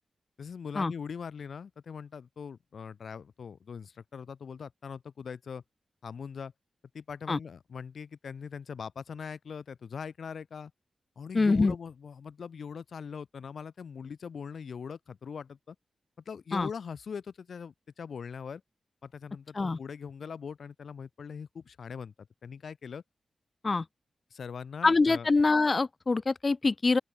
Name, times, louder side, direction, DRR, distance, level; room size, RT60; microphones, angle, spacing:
voice 1, 0.4-5.6 6.0-6.5 6.9-10.7 11.2-15.8 16.3-18.6 19.0-23.0 24.3-25.3, left 6 dB, 65° left, 2.8 m, -41 dB
voice 2, 11.3-11.7 16.5-16.7 19.6-19.8 23.6-23.9 24.8-27.0, left 3 dB, 30° left, 1.8 m, -25 dB
open air
wide cardioid pair, 180°, 0 cm